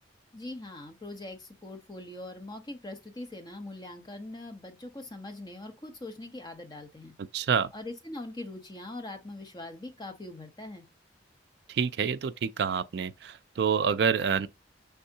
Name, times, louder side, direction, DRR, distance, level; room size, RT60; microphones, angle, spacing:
voice 1, 0.3-7.1 7.7-10.9, left 2 dB, 20° left, 0.8 m, -42 dB
voice 2, 7.3-7.7 11.7-14.5, right 6 dB, 60° right, 0.3 m, -27 dB
5.4 x 3.5 x 2.7 m
head